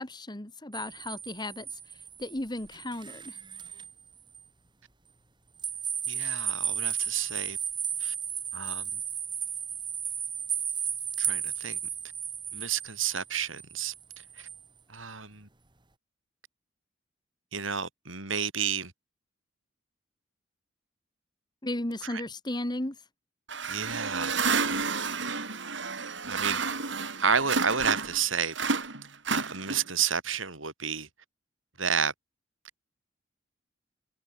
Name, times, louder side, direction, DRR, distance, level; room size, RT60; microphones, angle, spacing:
voice 1, 0.0-1.7 2.2-3.4 21.6-23.0, left 1 dB, 20° left, 1.7 m, -34 dB
sound 1, 0.7-3.9 4.3-4.4 5.6-14.6, right 8 dB, 25° right, 2.2 m, -34 dB
voice 2, 6.1-7.6 8.0-8.1 8.5-9.0 11.2-11.8 12.5-14.5 14.9-15.5 17.5-18.9 22.0-22.2 23.7-24.6 26.3-26.6 27.2-28.5 29.3-31.1 31.8-32.1, right 6 dB, 85° right, 8.0 m, -31 dB
sound 2, 23.5-28.2 28.5-30.0, right 4 dB, 65° right, 5.8 m, -30 dB
head